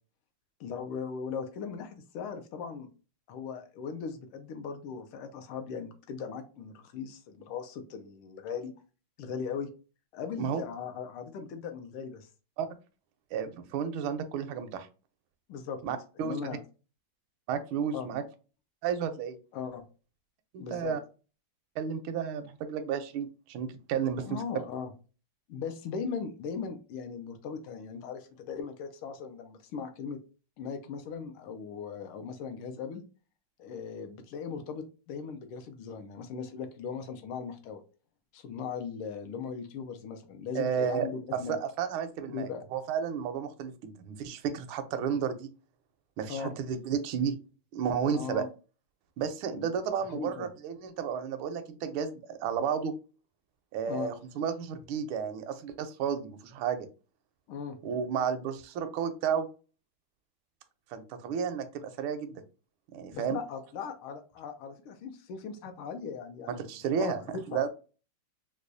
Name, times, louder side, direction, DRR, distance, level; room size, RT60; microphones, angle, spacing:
voice 1, 0.6-2.9 3.3-8.7 9.2-9.7 10.1-12.3 15.5-15.8 16.2-16.6 17.9-18.1 19.5-19.8 20.6-20.9 24.2-24.9 25.5-30.2 30.6-33.0 33.6-37.8 38.3-41.6 42.3-42.7 46.3-46.5 48.1-48.5 49.5-49.7 50.1-50.5 53.9-54.1 57.5-57.8 63.1-66.6 67.0-67.6, left 6 dB, 80° left, 6 dB, 1.5 m, -38 dB
voice 2, 13.3-14.9 15.8-16.4 17.5-18.2 18.8-19.4 20.5-21.0 21.8-24.4 40.5-45.5 46.2-47.4 47.7-48.4 49.2-52.9 53.7-56.9 57.8-59.5 60.9-62.4 62.9-63.4 66.5-67.2 67.5-67.7, right 7 dB, 75° right, 8 dB, 1.4 m, -32 dB
4.7 x 2.2 x 2.5 m, 0.34 s
omnidirectional pair, 2.4 m